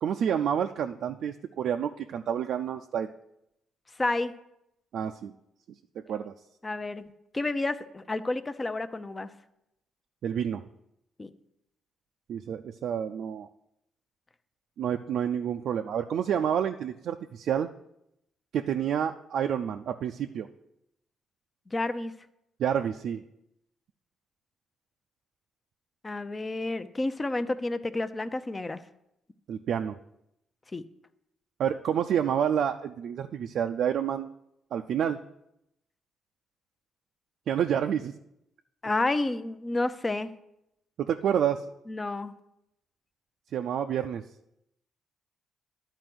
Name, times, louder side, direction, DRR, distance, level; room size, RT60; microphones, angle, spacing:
voice 1, 0.0-3.1 4.9-5.3 6.0-6.3 10.2-10.6 12.3-13.5 14.8-17.7 18.5-20.5 22.6-23.2 29.5-30.0 31.6-34.3 34.7-35.2 37.5-38.1 41.0-41.6 43.5-44.2, right 9 dB, 70° right, 5 dB, 0.4 m, -29 dB
voice 2, 4.0-4.3 6.6-7.0 7.3-9.3 11.2-11.3 21.7-22.1 26.0-28.8 30.7-30.8 38.8-40.3 41.9-42.3, left 2 dB, 25° left, 11 dB, 0.6 m, -30 dB
11.0 x 4.4 x 7.7 m, 0.83 s
cardioid pair, 90°, 0 cm